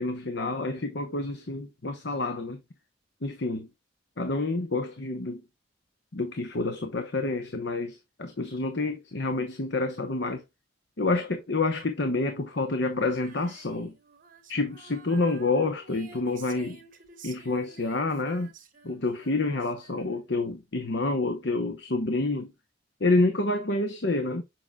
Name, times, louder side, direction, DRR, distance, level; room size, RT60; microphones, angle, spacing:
voice 1, 0.0-2.6 3.2-3.7 4.2-5.4 6.1-10.4 11.0-13.9 14.5-16.8 17.2-18.5 18.8-22.5 23.0-24.4, left 2 dB, 65° left, 0.9 m, -28 dB
Female singing, 13.0-20.4, right 5 dB, 50° right, 1.5 m, -52 dB
7.3 x 5.9 x 2.4 m
head